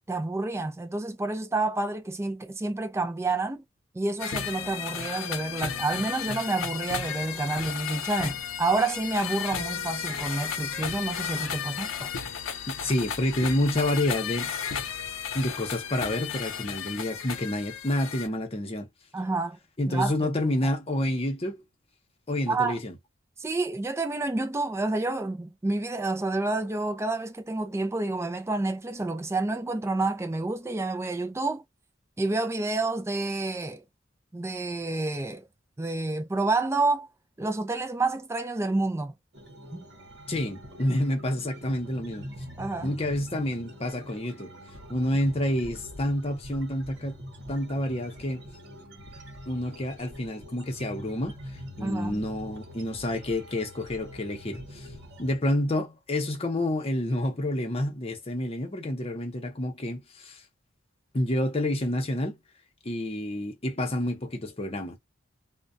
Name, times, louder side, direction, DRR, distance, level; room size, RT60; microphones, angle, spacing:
voice 1, 0.0-3.6 3.9-12.1 19.1-19.6 19.9-20.5 22.5-22.8 23.4-31.6 32.2-33.8 34.3-35.5 35.8-37.1 37.4-39.1 39.7-39.9 42.6-42.9 51.8-52.2, right 2 dB, 15° right, 0.4 m, -29 dB
sound 1, 4.2-18.3, left 7 dB, 80° left, 0.6 m, -34 dB
voice 2, 12.7-14.5 15.3-18.9 19.8-21.6 22.3-22.9 40.3-42.3 42.8-44.5 44.9-47.2 47.5-48.4 49.5-51.4 51.8-54.9 55.2-60.4 61.1-62.4 62.8-65.0, left 1 dB, 30° left, 0.8 m, -28 dB
sound 2, 39.3-55.4, equal, 55° right, 0.9 m, -44 dB
2.2 x 2.2 x 2.5 m
head